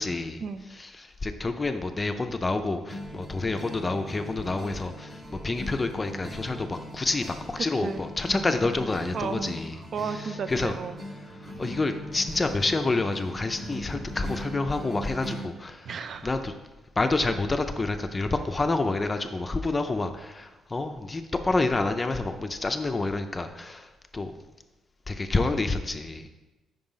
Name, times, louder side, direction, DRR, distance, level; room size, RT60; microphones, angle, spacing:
voice 1, 0.0-0.4 0.7-9.8 10.1-10.7 11.2-15.9 16.2-16.5 17.0-24.4 25.1-26.3, left 3 dB, 25° left, 7 dB, 0.4 m, -28 dB
sound 1, 2.9-15.5, equal, 20° right, 1.0 m, -40 dB
voice 2, 7.6-8.1 9.1-9.5 9.9-11.0 15.8-16.3, right 6 dB, 55° right, 10 dB, 0.4 m, -33 dB
5.3 x 3.8 x 5.5 m, 1.1 s
cardioid pair, 90°, 0 cm